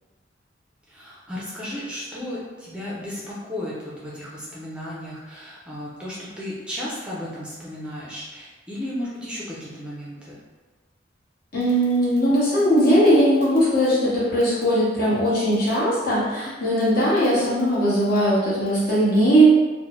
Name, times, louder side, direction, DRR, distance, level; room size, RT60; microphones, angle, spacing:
voice 1, 0.9-10.4, left 1 dB, 5° right, -7 dB, 0.4 m, -34 dB
voice 2, 11.5-19.4, equal, 55° left, -9 dB, 1.1 m, -19 dB
2.6 x 2.1 x 3.0 m, 1.3 s
head